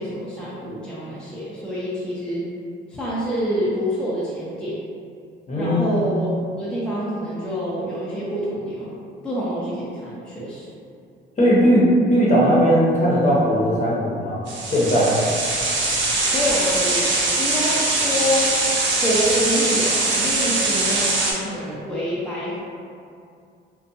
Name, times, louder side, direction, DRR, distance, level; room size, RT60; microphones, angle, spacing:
voice 1, 0.0-2.5 2.9-4.8 5.6-6.3 6.6-8.9 9.2-10.8 16.3-17.1 17.4-18.5 19.0-22.6, equal, 5° left, -8 dB, 0.5 m, -26 dB
voice 2, 5.5-5.8 11.4-15.2, equal, 35° left, -6 dB, 0.8 m, -18 dB
sound 1, 14.5-21.3, right 2 dB, 70° right, 0.6 m, -22 dB
2.6 x 2.2 x 2.6 m, 2.4 s
cardioid pair, 90°, 20 cm